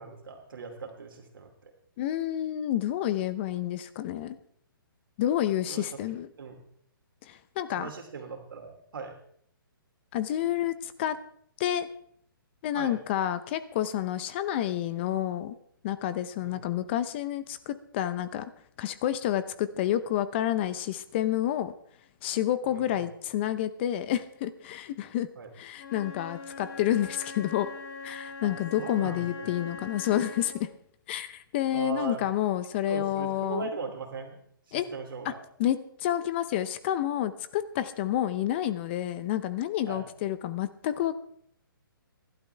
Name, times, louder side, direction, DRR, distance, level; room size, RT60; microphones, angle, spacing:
voice 1, 0.0-1.7 5.7-6.0 6.4-6.6 7.8-9.2 12.7-13.0 16.4-16.6 22.7-23.0 25.4-25.5 28.4-29.5 31.7-32.2 32.9-34.4 34.7-35.4 39.9-40.1, right 5 dB, 70° right, 3 dB, 2.9 m, -39 dB
voice 2, 2.0-4.4 5.2-6.3 7.2-7.9 10.1-11.2 11.6-11.9 12.6-15.5 15.8-18.4 18.8-21.7 22.2-25.3 25.6-27.7 28.0-30.7 31.1-33.7 34.7-34.8 35.2-35.3 35.6-41.1, left 12 dB, 30° left, 13 dB, 0.7 m, -29 dB
Wind instrument woodwind instrument, 25.7-30.7, left 4 dB, 50° left, 5.5 m, -42 dB
24.5 x 12.0 x 3.4 m, 0.66 s
hypercardioid pair, 155°, 12 cm